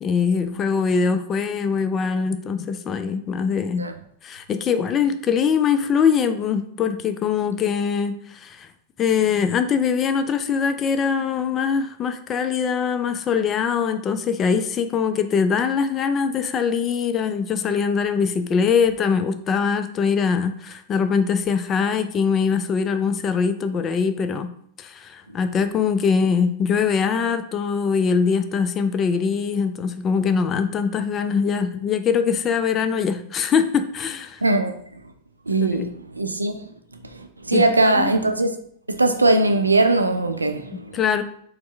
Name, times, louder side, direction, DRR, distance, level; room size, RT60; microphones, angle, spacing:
voice 1, 0.0-3.8 4.2-8.7 9.0-24.5 24.8-34.4 35.7-35.9 37.5-38.1 40.9-41.2, left 6 dB, 25° left, 0.3 m, -22 dB
voice 2, 34.4-34.7 35.5-36.6 37.2-38.5 38.9-41.0, right 2 dB, 80° right, 0.3 m, -20 dB
4.3 x 2.0 x 3.4 m
figure-of-eight pair, 90°, 0 cm